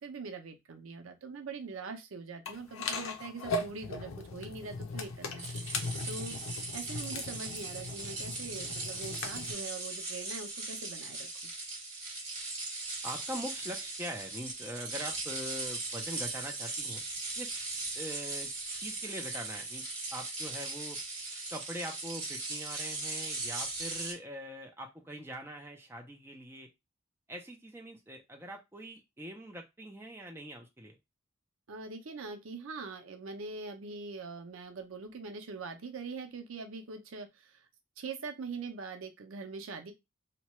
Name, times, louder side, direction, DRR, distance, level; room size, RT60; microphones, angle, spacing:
voice 1, 0.0-5.5 6.1-6.4 6.7-11.3 31.7-37.7 38.0-39.9, right 4 dB, 85° right, 6 dB, 0.6 m, -43 dB
sound 1, 2.5-9.5, left 3 dB, 85° left, 0.6 m, -38 dB
sound 2, 5.4-24.1, right 3 dB, 35° right, 1.2 m, -39 dB
voice 2, 13.0-17.0 17.3-17.6 18.0-18.5 18.8-19.8 20.1-21.0 21.5-26.7 27.3-30.9, equal, 10° right, 1 dB, 0.5 m, -42 dB
2.8 x 2.2 x 3.0 m, 0.22 s
head